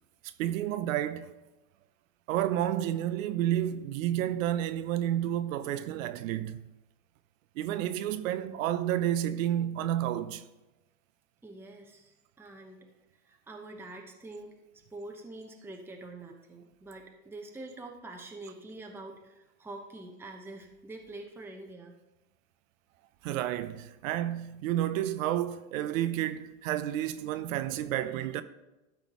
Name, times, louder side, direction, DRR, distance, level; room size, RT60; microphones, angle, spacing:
voice 1, 0.4-1.3 2.3-6.6 7.6-10.4 23.2-28.4, right 12 dB, 70° right, 0.7 m, -30 dB
voice 2, 11.4-12.8 13.3-14.6 14.9-21.9, right 2 dB, 5° right, 0.9 m, -45 dB
13.0 x 5.2 x 3.1 m
hypercardioid pair, 105°, 41 cm